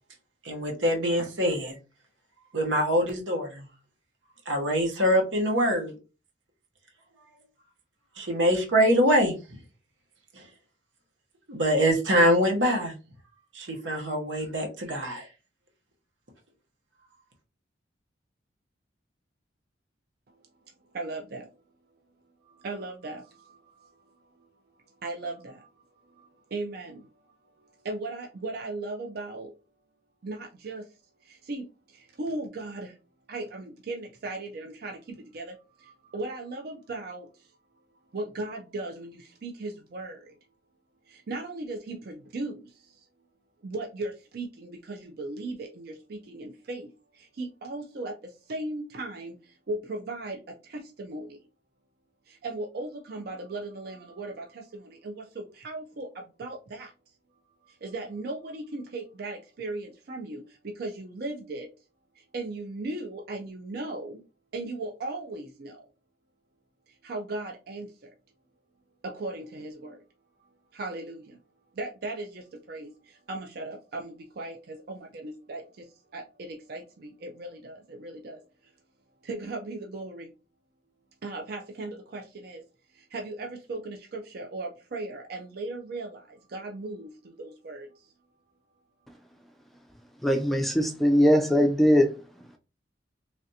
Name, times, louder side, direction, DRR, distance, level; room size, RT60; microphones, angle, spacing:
voice 1, 0.4-1.8 2.5-3.6 4.5-5.9 8.2-9.4 10.3-10.4 11.5-12.9 13.5-15.3, equal, 85° right, 0.9 m, -24 dB
voice 2, 20.9-21.6 22.4-24.5 24.9-25.7 26.0-27.1 27.6-29.5 30.2-33.0 33.3-37.6 38.1-40.3 41.1-43.1 43.6-51.4 52.3-56.9 57.7-61.7 62.1-64.2 64.5-65.8 66.9-68.1 69.0-70.0 70.7-71.4 71.7-78.7 79.2-80.3 81.2-82.6 82.9-88.1, right 2 dB, 55° right, 0.5 m, -38 dB
voice 3, 90.2-92.1, equal, ahead, 0.3 m, -21 dB
3.2 x 2.5 x 2.7 m
head